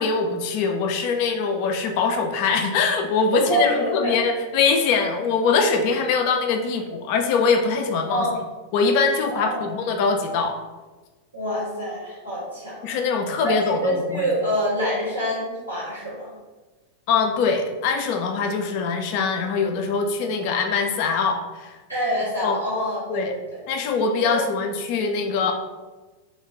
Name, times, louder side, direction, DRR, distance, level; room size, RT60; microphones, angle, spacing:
voice 1, 0.0-8.3 8.7-10.6 12.8-14.3 17.1-21.7 22.4-22.6 23.1-23.3 23.7-25.5, left 5 dB, 45° left, 4 dB, 0.3 m, -23 dB
voice 2, 3.3-4.1 8.1-8.4 9.3-9.7 11.3-13.0 13.4-13.5 13.8-16.3 21.9-23.6 24.2-24.4, equal, 85° right, -8 dB, 1.3 m, -26 dB
2.4 x 2.2 x 3.2 m, 1.3 s
figure-of-eight pair, 90°, 0 cm